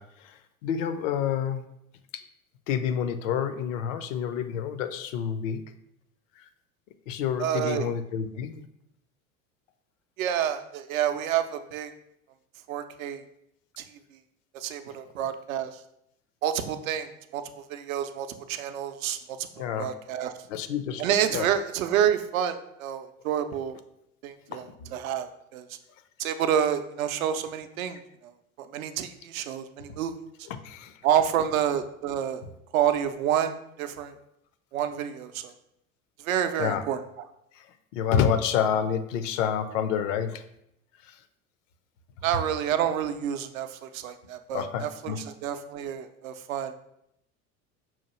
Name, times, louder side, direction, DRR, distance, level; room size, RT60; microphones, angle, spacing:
voice 1, 0.0-1.6 2.1-2.2 2.7-5.6 6.4-6.5 7.1-8.7 19.6-19.9 20.5-21.5 24.5-24.9 30.5-30.9 36.6-36.8 37.5-37.7 37.9-40.4 41.0-41.2 44.5-45.2, left 8 dB, 60° left, 10 dB, 0.5 m, -29 dB
voice 2, 7.4-7.9 10.2-11.9 12.7-13.2 13.8-13.9 14.5-15.8 16.4-20.3 21.0-23.8 24.2-24.7 24.9-25.3 25.5-25.7 26.2-28.3 28.6-30.1 31.0-32.4 32.7-34.1 34.7-35.5 36.2-37.0 42.2-45.2 45.4-46.7, right 9 dB, 70° right, 9 dB, 0.5 m, -28 dB
5.7 x 2.4 x 2.9 m, 0.77 s
figure-of-eight pair, 75°, 43 cm